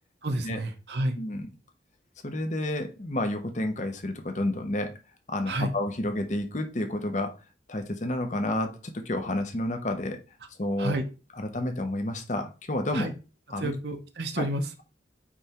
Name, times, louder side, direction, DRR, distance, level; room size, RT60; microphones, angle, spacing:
voice 1, 0.2-1.2 5.5-5.7 10.8-11.0 12.9-13.1 13.6-14.8, right 1 dB, 65° right, 1.0 m, -30 dB
voice 2, 1.2-1.5 2.2-5.0 5.3-7.3 7.7-10.2 10.6-10.9 11.4-13.1 13.5-13.7 14.4-14.5, left 1 dB, 40° left, 1.1 m, -30 dB
8.8 x 3.4 x 4.4 m
head